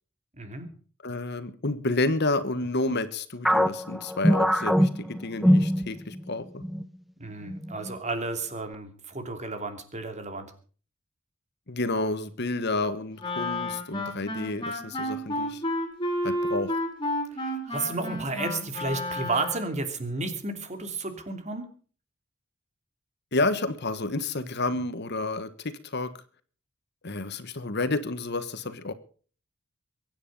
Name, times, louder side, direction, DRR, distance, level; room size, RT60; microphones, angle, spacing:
voice 1, 0.3-0.7 7.2-10.5 17.4-21.6, right 3 dB, 35° right, 7 dB, 2.9 m, -32 dB
voice 2, 1.0-6.6 11.7-15.6 16.2-16.7 23.3-26.1 27.0-28.9, left 2 dB, 55° left, 12 dB, 1.4 m, -30 dB
sound 1, 3.4-6.3 6.6-6.8 7.5-7.9, equal, ahead, 0.8 m, -23 dB
Wind instrument woodwind instrument, 13.2-19.8, left 1 dB, 25° left, 4.2 m, -31 dB
23.0 x 9.7 x 5.5 m, 0.41 s
head